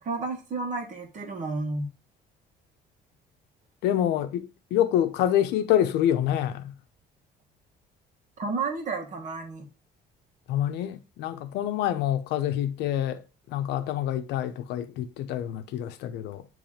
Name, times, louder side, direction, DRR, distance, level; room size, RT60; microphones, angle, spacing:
voice 1, 0.0-1.9 8.4-9.6, right 3 dB, 50° right, 1.7 m, -31 dB
voice 2, 3.8-6.7 10.5-16.5, left 11 dB, 85° left, 0.7 m, -27 dB
7.1 x 3.3 x 5.0 m
cardioid pair, 110°, 17 cm